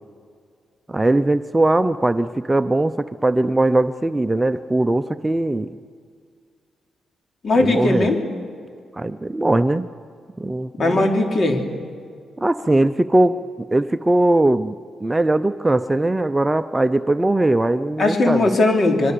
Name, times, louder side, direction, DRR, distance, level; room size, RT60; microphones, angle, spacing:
voice 1, 0.9-5.7 7.6-8.1 8.9-9.9 10.4-11.1 12.4-14.7 15.0-18.5, right 2 dB, 15° right, 11 dB, 0.7 m, -20 dB
voice 2, 7.4-8.2 10.8-11.6 18.0-19.1, left 2 dB, 45° left, 3 dB, 3.9 m, -18 dB
26.0 x 22.5 x 6.8 m, 2.1 s
cardioid pair, 80°, 0 cm